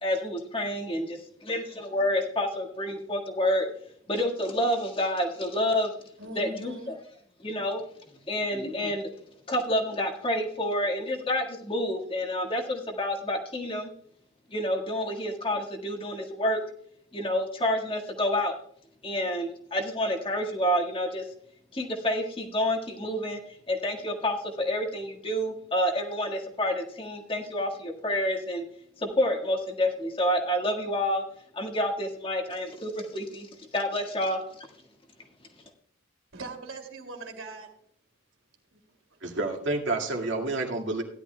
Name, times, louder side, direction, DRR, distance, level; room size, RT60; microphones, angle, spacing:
voice 1, 0.0-3.7 4.1-5.9 6.4-7.0 7.4-7.8 8.3-9.1 9.5-13.9 14.5-16.6 17.1-18.6 19.0-21.3 21.7-23.4 23.7-28.6 29.0-31.2 31.5-34.7, left 1 dB, 25° left, 1 dB, 1.7 m, -28 dB
voice 2, 6.2-6.9 36.3-37.7 38.7-38.8, right 2 dB, 80° right, 4 dB, 2.6 m, -40 dB
voice 3, 39.2-41.0, right 2 dB, 65° right, 1 dB, 2.2 m, -29 dB
16.5 x 11.5 x 2.3 m, 0.66 s
head